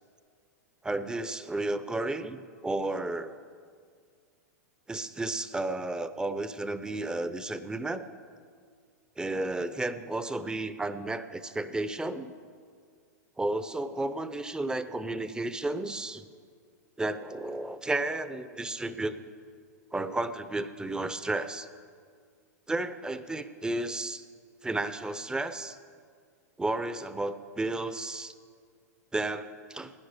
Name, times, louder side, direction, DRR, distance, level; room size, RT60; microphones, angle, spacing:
voice 1, 0.8-3.3 4.9-8.0 9.2-12.3 13.4-16.3 17.0-19.2 19.9-21.7 22.7-24.2 24.6-25.8 26.6-28.3 29.1-29.9, right 2 dB, 10° right, 12 dB, 0.7 m, -32 dB
17.0 x 10.0 x 6.5 m, 2.1 s
hypercardioid pair, 105°, 9 cm